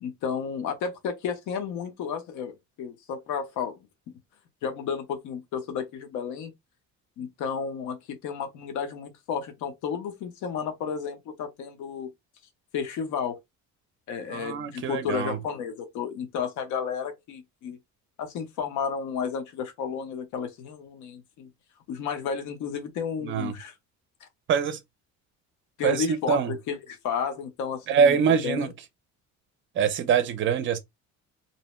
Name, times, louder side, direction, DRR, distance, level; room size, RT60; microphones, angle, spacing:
voice 1, 0.0-3.7 4.6-6.5 7.2-12.1 12.7-13.4 14.1-17.8 18.2-21.5 21.9-23.7 25.8-28.2 28.4-28.7, left 6 dB, 70° left, 0.7 m, -32 dB
voice 2, 14.3-15.4 23.2-23.5 24.5-24.8 25.8-26.5 27.9-28.7 29.8-30.8, right 7 dB, 40° right, 0.5 m, -24 dB
2.7 x 2.1 x 2.9 m
cardioid pair, 165°, 31 cm